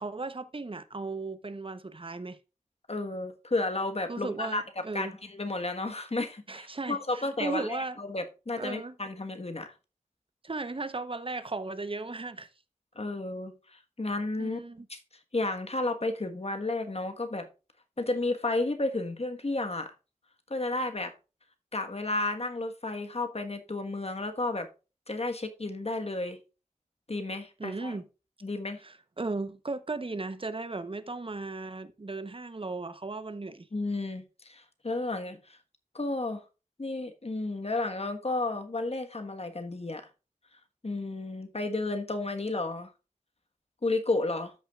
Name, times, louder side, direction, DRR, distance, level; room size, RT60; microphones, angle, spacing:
voice 1, 0.0-2.4 4.1-5.1 6.5-8.0 8.6-8.9 10.4-12.5 14.4-14.9 27.6-28.1 28.8-33.7, right 3 dB, 40° right, 0.8 m, -36 dB
voice 2, 2.9-4.6 4.9-9.7 12.9-14.6 14.9-15.0 15.3-17.5 18.0-19.9 20.5-21.1 21.7-24.7 25.1-26.4 27.1-28.0 28.4-28.8 33.7-35.6 35.9-36.4 36.8-40.1 40.8-42.9 43.8-44.5, left 2 dB, 50° left, 1.3 m, -32 dB
13.5 x 6.2 x 2.3 m
wide cardioid pair, 65°, 14 cm